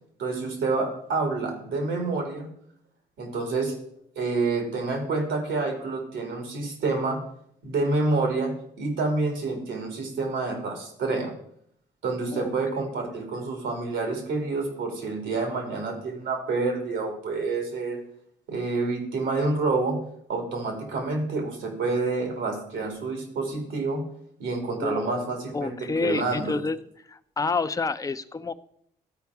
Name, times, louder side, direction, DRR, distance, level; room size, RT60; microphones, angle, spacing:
voice 1, 0.2-2.5 3.2-3.7 4.2-7.2 7.6-11.3 12.0-18.0 18.5-20.0 20.3-24.0 24.4-26.6, right 3 dB, 85° right, 4 dB, 2.1 m, -28 dB
voice 2, 24.8-25.3 25.5-26.8 27.1-28.5, left 4 dB, 20° left, 11 dB, 0.5 m, -28 dB
13.0 x 4.6 x 4.7 m, 0.72 s
supercardioid pair, 60°, 19 cm